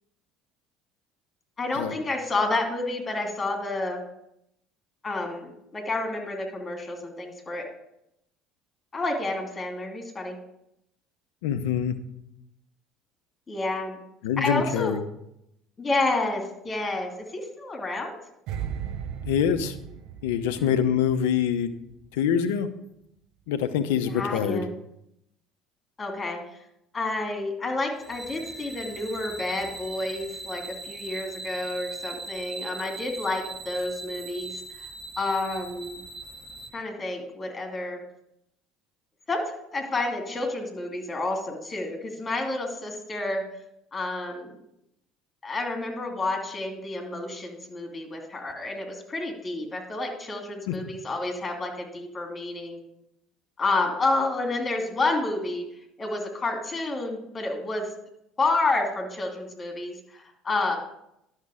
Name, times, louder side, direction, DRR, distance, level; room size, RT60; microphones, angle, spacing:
voice 1, 1.6-4.0 5.0-7.7 8.9-10.4 13.5-14.0 14.4-14.9 15.8-18.1 20.6-20.8 24.1-24.7 26.0-26.4 26.9-34.5 35.2-36.0 36.7-38.0 39.3-43.4 43.9-44.5 45.4-52.8 53.6-55.6 56.0-57.8 58.4-60.8, left 2 dB, 25° left, 2 dB, 2.7 m, -29 dB
voice 2, 11.4-11.9 14.2-15.0 19.2-19.8 20.2-21.7 22.1-22.7 23.5-24.6 50.7-50.8, left 8 dB, 75° left, 11 dB, 0.7 m, -25 dB
sound 1, 18.5-21.7 21.9-22.2, right 8 dB, 60° right, 0.8 m, -36 dB
sound 2, 28.0-36.7, right 2 dB, 5° left, 2.8 m, -40 dB
11.0 x 6.5 x 5.0 m, 0.79 s
hypercardioid pair, 65°, 0 cm